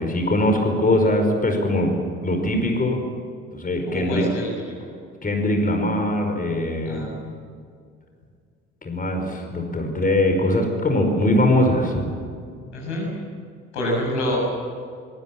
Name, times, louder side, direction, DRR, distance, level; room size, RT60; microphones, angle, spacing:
voice 1, 0.0-1.9 2.2-3.0 3.5-4.2 5.2-7.1 8.8-12.2, left 1 dB, 25° left, 3 dB, 5.3 m, -21 dB
voice 2, 3.9-4.5 6.9-7.1 12.7-13.1 13.7-14.4, left 1 dB, 75° left, -1 dB, 7.1 m, -26 dB
24.5 x 22.0 x 7.4 m, 2.2 s
figure-of-eight pair, 50°, 35 cm